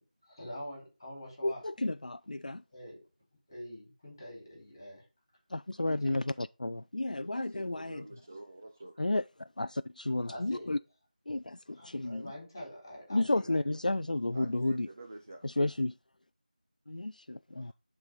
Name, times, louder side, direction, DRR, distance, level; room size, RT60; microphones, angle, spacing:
voice 1, 0.3-1.6 2.7-3.0 3.5-5.0 5.9-6.1 10.3-10.8 11.7-13.6, left 1 dB, 20° left, 4.8 m, -45 dB
voice 2, 1.4-2.6 5.5-8.1 9.0-10.8 11.3-12.3 13.1-14.9 15.4-15.9 16.9-17.7, left 2 dB, 60° left, 0.3 m, -32 dB
voice 3, 7.3-9.0 14.3-15.5, right 2 dB, 20° right, 0.4 m, -48 dB
10.0 x 4.0 x 5.1 m
figure-of-eight pair, 170°, 5 cm